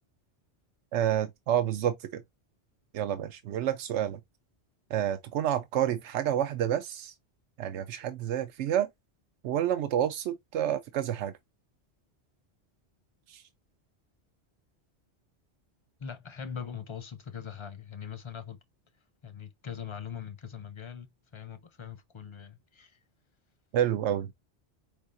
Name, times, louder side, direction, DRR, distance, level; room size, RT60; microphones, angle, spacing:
voice 1, 0.9-2.2 2.9-4.2 4.9-7.1 7.6-8.9 9.4-11.3 13.3-13.4 23.7-24.3, right 10 dB, 85° right, 0.9 m, -29 dB
voice 2, 16.0-18.6 19.2-21.1 21.3-23.0, left 7 dB, 35° left, 0.5 m, -41 dB
4.6 x 3.5 x 2.5 m
omnidirectional pair, 1.2 m